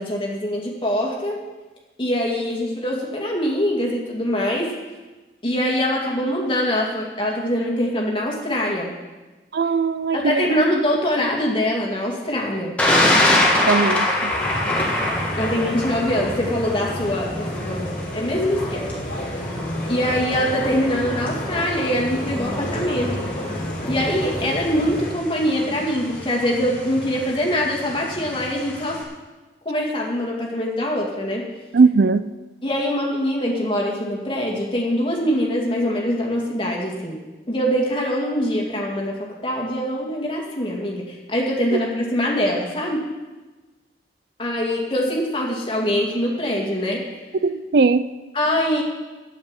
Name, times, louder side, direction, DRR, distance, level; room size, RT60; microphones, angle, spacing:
voice 1, 0.0-1.4 2.0-4.7 5.4-8.9 10.1-12.7 14.6-14.9 15.4-19.5 19.9-23.3 23.9-29.0 29.6-31.5 32.6-37.2 37.5-43.0 44.4-47.0 48.3-48.8, equal, 30° left, 2.2 m, -23 dB
voice 2, 9.5-10.4 13.7-14.3 31.7-32.3 47.4-48.1, right 4 dB, 65° right, 0.4 m, -19 dB
Thunder, 12.8-29.0, left 1 dB, 5° left, 1.7 m, -26 dB
sound 1, 14.3-25.1, equal, 45° left, 2.3 m, -30 dB
9.5 x 7.8 x 8.9 m
head